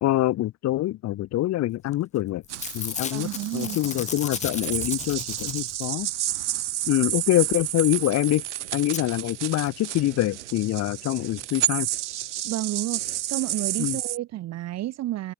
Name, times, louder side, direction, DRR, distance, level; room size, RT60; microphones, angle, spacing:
voice 1, 0.0-2.4 2.7-6.1 6.9-8.4 8.7-11.9 13.8-14.0, left 15 dB, 50° left, 1.0 m, -25 dB
Packing tape duct tape / Tearing, 1.9-2.2 2.4-6.0 8.0-8.1 8.2-8.3 8.9-9.0 9.7-9.8 10.0-10.1, left 7 dB, 20° left, 0.5 m, -35 dB
sound 1, 2.5-14.2, right 14 dB, 80° right, 0.6 m, -31 dB
voice 2, 3.1-3.8 12.4-15.3, right 14 dB, 50° right, 1.2 m, -31 dB
figure-of-eight pair, 50°, 35 cm